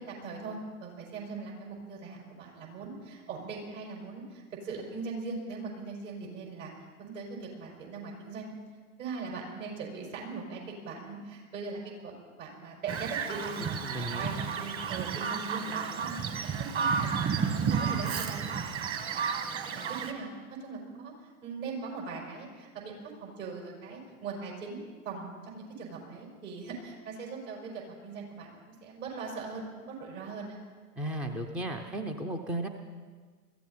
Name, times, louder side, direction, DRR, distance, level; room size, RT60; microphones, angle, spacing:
voice 1, 0.0-6.7 7.0-8.5 9.0-12.1 12.4-13.7 14.0-16.3 16.7-18.5 19.5-20.3 20.6-21.1 21.4-30.6, right 4 dB, 60° right, -1 dB, 5.6 m, -40 dB
Bird vocalization bird call bird song, 12.9-20.1, right 6 dB, 30° right, 1.5 m, -32 dB
voice 2, 13.8-14.3 31.0-32.7, right 1 dB, 5° right, 6 dB, 0.4 m, -35 dB
21.5 x 15.0 x 4.2 m, 1.5 s
figure-of-eight pair, 100°, 44 cm